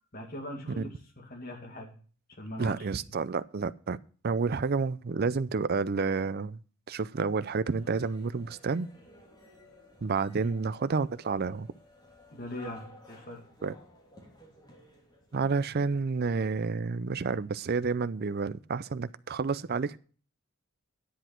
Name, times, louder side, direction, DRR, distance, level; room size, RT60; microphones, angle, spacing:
voice 1, 0.1-0.9 1.2-1.9 2.4-2.7 3.1-3.2 10.4-10.5 12.3-13.4, left 1 dB, 45° left, 2.2 m, -41 dB
voice 2, 2.6-4.0 4.2-6.6 6.9-8.9 10.0-11.7 13.6-13.7 15.3-20.0, right 4 dB, 45° right, 0.5 m, -30 dB
sound 1, 7.6-15.9, equal, 20° left, 3.3 m, -55 dB
10.0 x 8.1 x 4.4 m
head